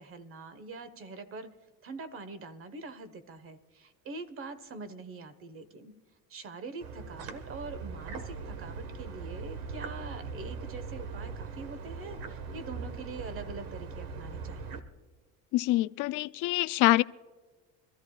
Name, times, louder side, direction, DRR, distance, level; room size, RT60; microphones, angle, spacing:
voice 1, 0.0-1.5 1.8-5.9 6.3-14.8, right 3 dB, 35° right, 1.3 m, -44 dB
sound 1, 6.8-14.8, right 5 dB, 75° right, 1.5 m, -40 dB
voice 2, 15.5-17.0, left 18 dB, 60° left, 0.5 m, -25 dB
26.0 x 14.5 x 2.4 m
cardioid pair, 135°, 36 cm